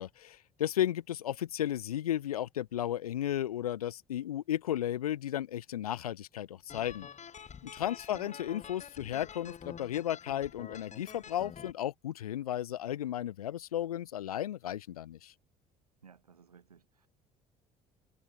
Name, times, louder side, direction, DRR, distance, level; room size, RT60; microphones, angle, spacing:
voice 1, 0.0-7.1 7.6-15.3, left 12 dB, 80° left, 1.4 m, -34 dB
sound 1, 6.7-11.7, left 7 dB, 40° left, 4.2 m, -48 dB
voice 2, 16.0-17.1, right 6 dB, 85° right, 7.8 m, -56 dB
figure-of-eight pair, 55°, 19 cm